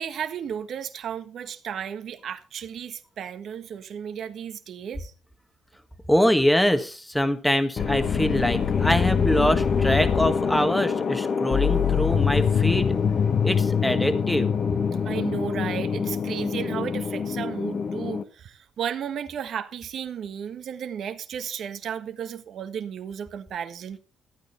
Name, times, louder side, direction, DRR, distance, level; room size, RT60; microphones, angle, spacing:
voice 1, 0.0-5.1 15.0-24.0, right 8 dB, 65° right, 1.4 m, -34 dB
voice 2, 6.1-13.0 13.4-14.5, equal, 5° left, 1.6 m, -24 dB
sound 1, 7.8-18.2, left 6 dB, 50° left, 1.4 m, -24 dB
14.5 x 9.1 x 4.4 m
cardioid pair, 90°, 0 cm